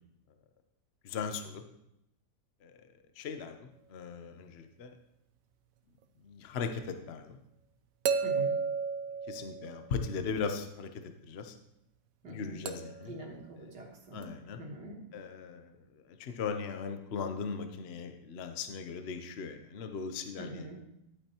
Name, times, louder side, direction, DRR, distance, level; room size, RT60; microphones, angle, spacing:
voice 1, 1.0-1.6 2.6-2.7 3.2-4.9 6.2-7.4 9.3-11.5 12.3-13.1 14.1-14.6 15.1-15.7 16.1-20.7, left 5 dB, 50° left, 7 dB, 0.8 m, -38 dB
sound 1, 6.6-6.7 8.1-10.1 12.7-13.1 14.2-14.3, right 5 dB, 65° right, 0.9 m, -33 dB
voice 2, 8.2-8.6 12.2-12.7 13.1-14.3 14.6-15.1 20.4-20.8, right 2 dB, 85° right, -2 dB, 2.2 m, -44 dB
12.0 x 8.6 x 2.9 m, 0.82 s
omnidirectional pair, 1.8 m